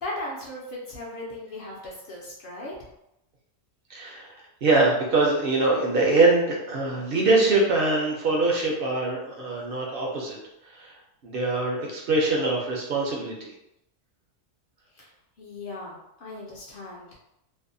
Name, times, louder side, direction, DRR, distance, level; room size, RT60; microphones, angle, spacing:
voice 1, 0.0-2.7 14.9-15.1 15.4-17.2, left 1 dB, 60° left, -4 dB, 0.6 m, -37 dB
voice 2, 3.9-10.4 10.7-10.9 11.2-13.5, right 2 dB, 60° right, -2 dB, 0.6 m, -23 dB
2.6 x 2.1 x 2.5 m, 0.84 s
omnidirectional pair, 1.3 m